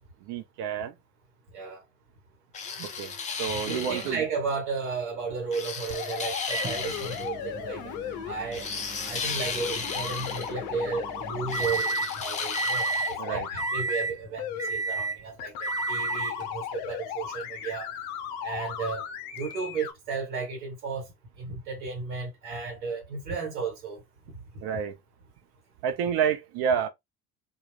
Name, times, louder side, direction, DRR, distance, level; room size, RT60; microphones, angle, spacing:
voice 1, 0.2-0.9 2.8-3.1 3.4-4.2 13.2-13.5 24.6-25.0 25.8-26.9, right 7 dB, 50° right, 0.7 m, -29 dB
sound 1, 2.5-4.2 5.5-7.3 8.5-10.5 11.5-13.1, left 5 dB, 15° left, 0.3 m, -35 dB
voice 2, 3.5-7.9 8.3-8.7 8.9-17.9 18.4-19.0 19.3-21.1 21.4-24.0 24.3-24.4, right 5 dB, 70° right, 1.3 m, -34 dB
sound 2, 5.9-8.3 9.6-14.0 14.4-14.7 15.4-19.9, left 9 dB, 60° left, 0.6 m, -36 dB
Microwave oven, 6.5-12.1 12.5-13.2 13.6-14.2 14.6-15.2 15.6-16.4 17.4-17.5 19.5-19.6, right 3 dB, 10° right, 0.7 m, -33 dB
2.3 x 2.0 x 3.1 m
figure-of-eight pair, 65°, 49 cm